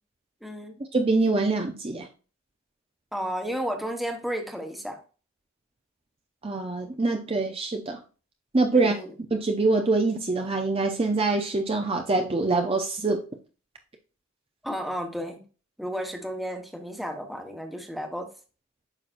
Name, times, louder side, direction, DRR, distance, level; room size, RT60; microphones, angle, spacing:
voice 1, 0.4-0.8 3.1-5.0 8.7-9.1 14.6-15.4 15.8-18.3, equal, ahead, 3 dB, 1.1 m, -32 dB
voice 2, 0.9-2.1 6.4-8.0 8.5-9.0 9.3-13.2, right 3 dB, 25° right, 4 dB, 0.6 m, -24 dB
8.9 x 5.8 x 2.5 m, 0.35 s
head